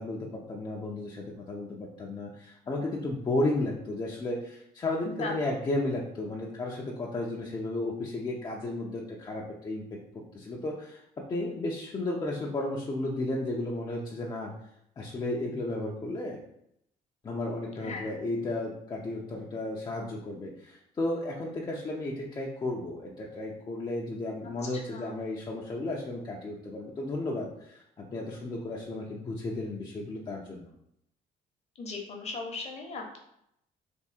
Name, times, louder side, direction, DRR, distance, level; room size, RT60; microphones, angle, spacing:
voice 1, 0.0-9.8 10.1-14.5 15.0-16.4 17.2-30.7, left 2 dB, 25° left, -3 dB, 0.6 m, -33 dB
voice 2, 31.8-33.2, left 3 dB, 45° left, 2 dB, 0.9 m, -37 dB
3.5 x 2.6 x 4.2 m, 0.76 s
cardioid pair, 125°, 16 cm